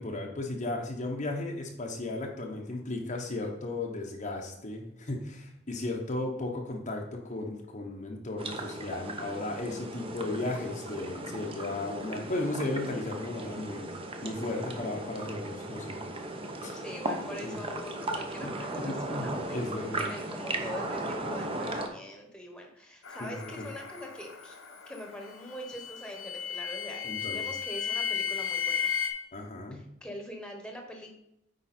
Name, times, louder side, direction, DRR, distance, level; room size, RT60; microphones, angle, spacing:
voice 1, 0.0-13.9 14.2-16.0 16.6-16.8 17.4-17.6 18.4-20.1 23.2-23.7 27.0-27.4 29.3-29.9, left 2 dB, 35° left, 0 dB, 0.9 m, -35 dB
sound 1, 8.4-21.9, right 1 dB, 25° right, 0.9 m, -37 dB
voice 2, 16.8-24.6 24.9-29.1 29.7-31.2, equal, 5° left, 2 dB, 1.2 m, -43 dB
sound 2, 23.0-29.1, left 7 dB, 70° left, 1.2 m, -35 dB
9.0 x 4.8 x 4.3 m, 0.81 s
head